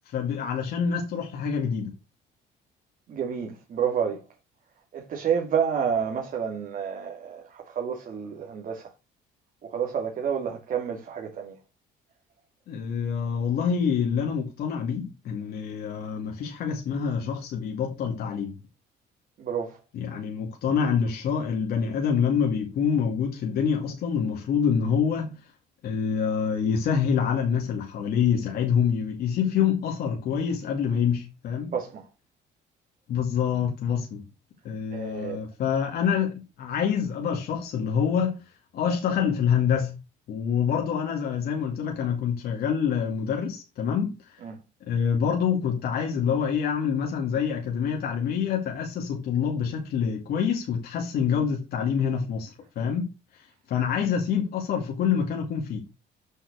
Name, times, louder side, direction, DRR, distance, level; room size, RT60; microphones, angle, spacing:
voice 1, 0.1-1.9 12.7-18.5 19.9-25.3 25.8-31.7 33.1-34.2 34.6-38.4 38.7-39.9 40.3-44.4 44.9-55.8, left 7 dB, 65° left, 2.4 m, -26 dB
voice 2, 3.1-4.2 4.9-8.9 9.6-11.6 19.4-19.8 31.7-32.0 34.9-35.4 44.4-44.6, right 7 dB, 55° right, 2.6 m, -29 dB
7.9 x 5.9 x 6.6 m
cardioid pair, 110°, 17 cm